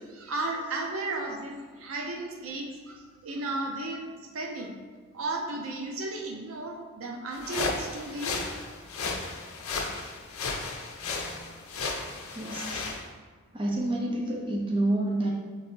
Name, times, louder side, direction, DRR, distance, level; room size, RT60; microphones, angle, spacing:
voice 1, 0.0-4.0 4.3-4.7 5.1-8.4, right 2 dB, 75° right, 1 dB, 0.6 m, -34 dB
sound 1, 7.3-13.0, left 4 dB, 80° left, 0.6 m, -34 dB
voice 2, 11.0-11.5 11.8-11.9 12.3-12.9 13.5-15.3, right 1 dB, 25° right, -2 dB, 0.5 m, -29 dB
3.8 x 3.1 x 4.4 m, 1.5 s
head